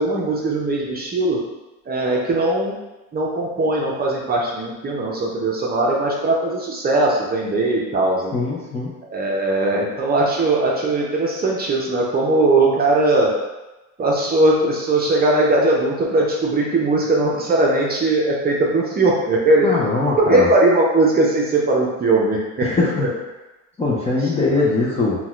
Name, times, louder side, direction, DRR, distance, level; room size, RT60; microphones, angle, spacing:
voice 1, 0.0-1.4 1.9-2.8 3.1-8.3 9.1-13.3 14.0-19.7 20.2-22.7 23.0-23.1, right 2 dB, 25° right, -3 dB, 0.7 m, -19 dB
voice 2, 8.3-8.9 19.6-20.5 22.6-23.1 23.8-25.2, left 3 dB, 15° left, -6 dB, 0.5 m, -21 dB
4.0 x 2.3 x 2.4 m, 1.1 s
supercardioid pair, 100°, 40 cm